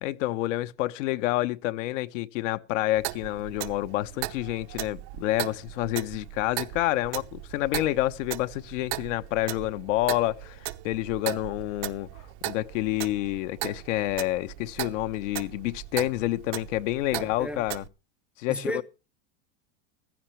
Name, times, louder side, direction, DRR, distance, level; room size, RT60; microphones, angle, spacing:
voice 1, 0.0-12.1 12.5-17.8 18.4-18.8, left 16 dB, 65° left, 1.1 m, -28 dB
Clock, 2.9-17.9, right 18 dB, 60° right, 0.9 m, -37 dB
voice 2, 17.1-17.7 18.5-18.8, equal, 5° right, 0.6 m, -34 dB
15.0 x 14.5 x 3.2 m
supercardioid pair, 145°, 39 cm